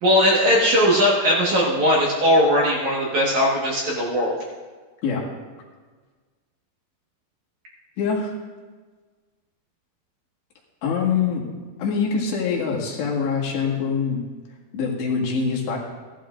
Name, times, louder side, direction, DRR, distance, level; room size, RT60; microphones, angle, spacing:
voice 1, 0.0-4.4, equal, 60° right, -4 dB, 2.1 m, -19 dB
voice 2, 8.0-8.3 10.8-11.4 11.8-14.2 14.7-15.8, left 5 dB, 70° left, -2 dB, 3.7 m, -24 dB
17.5 x 12.0 x 2.5 m, 1.4 s
omnidirectional pair, 5.4 m